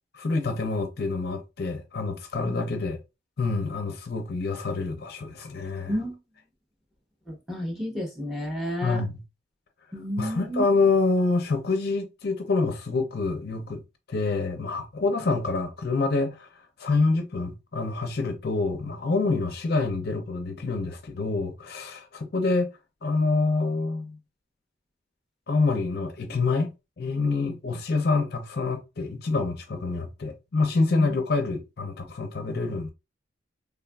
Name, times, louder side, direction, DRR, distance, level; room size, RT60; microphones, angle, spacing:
voice 1, 0.1-3.0 3.4-6.0 8.8-9.2 10.2-13.8 14.1-16.5 16.8-22.7 23.0-24.2 25.5-26.7 27.0-32.9, left 3 dB, 50° left, 0.5 m, -26 dB
voice 2, 5.9-6.2 7.3-9.0 9.9-10.6 31.0-31.1, equal, ahead, 0.8 m, -31 dB
3.4 x 2.4 x 2.2 m
head